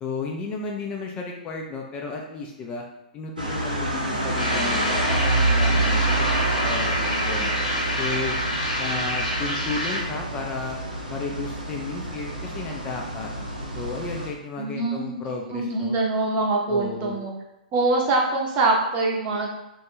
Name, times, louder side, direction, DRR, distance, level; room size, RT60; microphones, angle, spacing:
voice 1, 0.0-2.8 3.1-7.5 8.0-8.4 8.8-10.8 11.1-13.3 13.7-16.0 16.7-17.2, left 4 dB, 25° left, 0 dB, 0.3 m, -33 dB
sound 1, 3.4-14.3, right 2 dB, 85° right, 0.7 m, -27 dB
sound 2, 4.4-10.2, left 1 dB, 90° left, 1.1 m, -27 dB
voice 2, 14.6-15.2 15.5-17.3 17.7-19.5, right 3 dB, 35° right, -2 dB, 0.6 m, -24 dB
2.3 x 2.1 x 3.0 m, 0.92 s
figure-of-eight pair, 115°, 4 cm